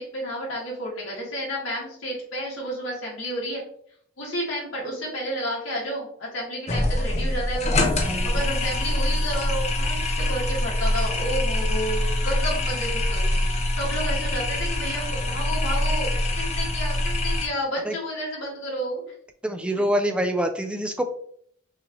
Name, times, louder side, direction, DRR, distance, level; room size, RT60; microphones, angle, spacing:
voice 1, 0.0-3.6 4.2-7.8 8.2-13.2 13.7-16.1 16.4-19.0, equal, 85° left, -4 dB, 2.0 m, -31 dB
sound 1, 6.7-17.5, left 1 dB, 35° left, 0.6 m, -24 dB
voice 2, 19.4-21.0, equal, 5° right, 5 dB, 0.4 m, -25 dB
6.2 x 2.7 x 3.0 m, 0.64 s
head